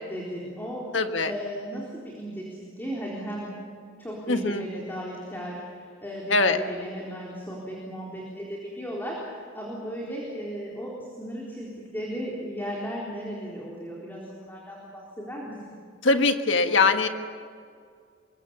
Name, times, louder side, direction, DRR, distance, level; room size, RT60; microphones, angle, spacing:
voice 1, 0.1-0.8 1.2-3.5 4.0-10.9 11.2-15.5, equal, 10° left, -4 dB, 4.0 m, -36 dB
voice 2, 0.9-1.3 4.3-4.6 6.3-6.6 16.0-17.1, left 3 dB, 65° left, 6 dB, 1.6 m, -22 dB
26.5 x 23.5 x 7.0 m, 2.2 s
head